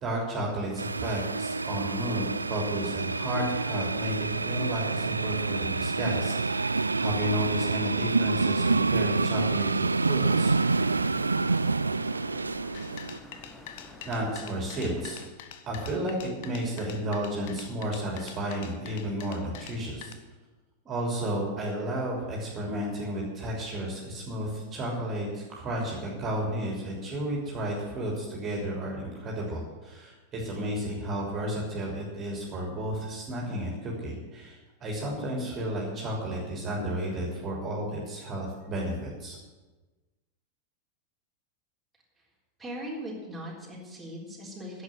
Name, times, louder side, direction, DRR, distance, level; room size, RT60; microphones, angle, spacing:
voice 1, 0.0-10.6 14.1-15.2 15.7-20.1 20.9-39.4, right 1 dB, 30° right, -2 dB, 3.3 m, -32 dB
sound 1, 0.8-13.2, right 3 dB, 80° right, 0.3 m, -27 dB
sound 2, 10.2-15.3, left 2 dB, 15° left, 2.2 m, -48 dB
sound 3, 12.7-20.1, left 9 dB, 50° left, 1.0 m, -45 dB
voice 2, 42.6-44.8, equal, 5° right, -5 dB, 3.9 m, -39 dB
11.0 x 7.7 x 9.8 m, 1.2 s
figure-of-eight pair, 90°, 0 cm